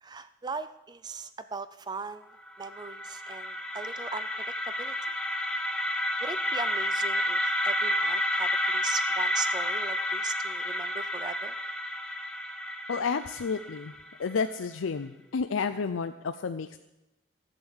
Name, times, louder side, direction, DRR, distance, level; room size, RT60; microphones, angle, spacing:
voice 1, 0.0-2.3 2.6-4.9 6.2-11.5, right 4 dB, 20° right, 12 dB, 0.4 m, -39 dB
sound 1, 2.5-14.4, left 1 dB, 5° left, 0.8 m, -30 dB
voice 2, 12.9-13.9 14.2-16.8, left 5 dB, 90° left, 9 dB, 0.5 m, -31 dB
13.5 x 8.0 x 7.2 m, 0.96 s
head